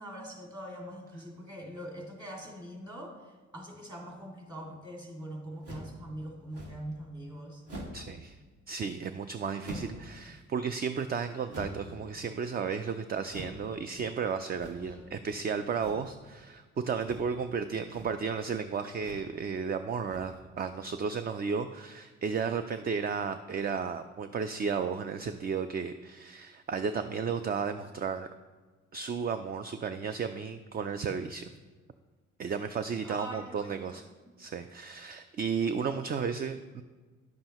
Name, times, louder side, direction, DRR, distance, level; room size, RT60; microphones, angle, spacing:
voice 1, 0.0-7.6 14.7-15.2 33.0-34.1, equal, 15° right, -1 dB, 2.3 m, -43 dB
sound 1, 5.6-6.0 6.5-6.9 7.6-8.1 9.6-10.1 11.5-12.0 13.3-13.6 14.5-15.0 15.8-16.1 17.0-17.4 17.8-18.2 19.0-19.3 20.0-20.5, equal, 50° right, 1.9 m, -44 dB
voice 2, 7.9-8.4 8.7-28.3 28.9-31.5 32.4-34.1 34.4-36.8, right 6 dB, 30° right, 10 dB, 0.4 m, -33 dB
10.5 x 7.4 x 3.0 m, 1.4 s
cardioid pair, 90°, 30 cm